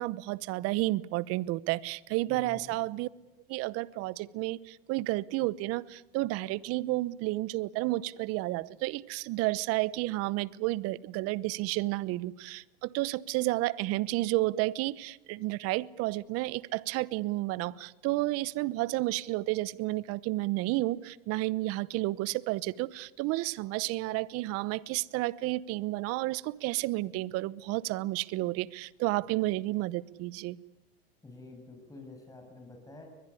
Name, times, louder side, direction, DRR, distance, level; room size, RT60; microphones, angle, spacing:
voice 1, 0.0-3.1 3.5-30.6, right 19 dB, 55° right, 0.9 m, -31 dB
voice 2, 2.3-2.8 31.2-33.0, left 2 dB, 10° left, 7.2 m, -48 dB
22.5 x 21.0 x 9.9 m
supercardioid pair, 110°, 29 cm